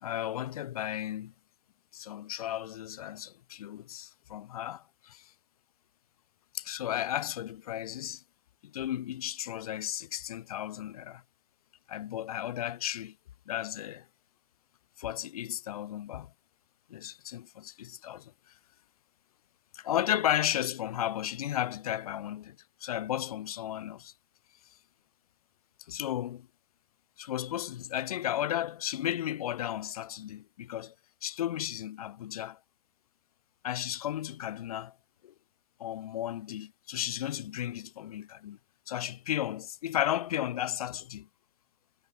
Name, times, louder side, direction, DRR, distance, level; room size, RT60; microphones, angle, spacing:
voice 1, 0.0-1.3 1.9-5.2 6.5-8.2 8.6-11.2 11.9-13.1 13.5-14.0 15.0-16.3 16.9-18.3 19.7-22.6 22.8-24.1 25.9-26.5 27.2-30.9 31.2-32.6 33.6-34.9 35.2-35.3 35.8-38.6 38.9-41.3, left 12 dB, 25° left, 0.8 m, -34 dB
figure-of-eight pair, 135°, 42 cm